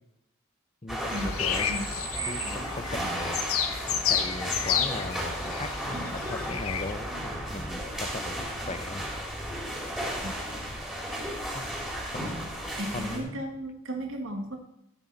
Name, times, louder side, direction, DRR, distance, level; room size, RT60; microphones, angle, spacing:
voice 1, 0.8-1.7 2.3-9.0 11.5-11.7 12.1-12.4 12.9-13.5, left 2 dB, 30° left, 11 dB, 0.8 m, -38 dB
sound 1, 0.9-13.2, equal, 5° right, 3.3 m, -34 dB
sound 2, 1.1-6.9, left 8 dB, 85° left, 1.2 m, -31 dB
voice 2, 12.7-14.6, right 1 dB, 65° right, 3 dB, 1.9 m, -35 dB
15.5 x 9.0 x 4.1 m, 0.80 s
head